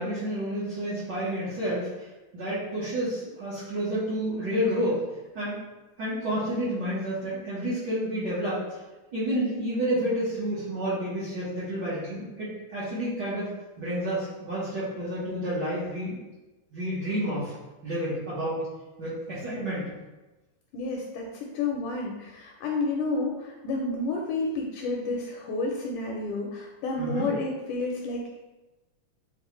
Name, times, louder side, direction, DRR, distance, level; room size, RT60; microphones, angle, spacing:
voice 1, 0.0-5.0 5.3-5.6 6.0-8.6 9.1-13.5 13.8-16.2 16.7-17.5 17.8-18.6 19.0-19.9 27.0-27.3, equal, 70° right, -10 dB, 1.0 m, -30 dB
voice 2, 20.7-28.4, left 3 dB, 80° left, 0 dB, 1.8 m, -30 dB
7.2 x 2.4 x 3.1 m, 1.1 s
omnidirectional pair, 3.9 m